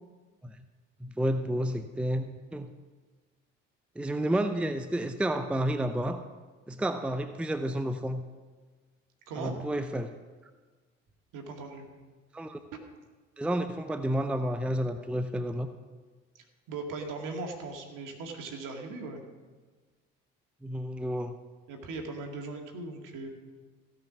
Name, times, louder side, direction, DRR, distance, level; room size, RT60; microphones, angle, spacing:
voice 1, 1.0-2.7 4.0-6.2 6.7-8.2 9.4-10.1 12.3-12.6 13.4-15.7 20.6-21.4, right 1 dB, 5° right, 10 dB, 0.6 m, -30 dB
voice 2, 9.3-9.7 11.3-11.9 12.7-12.8 16.3-19.2 21.7-23.3, right 3 dB, 55° right, 3 dB, 2.2 m, -39 dB
16.5 x 5.8 x 6.0 m, 1.4 s
hypercardioid pair, 55°, 36 cm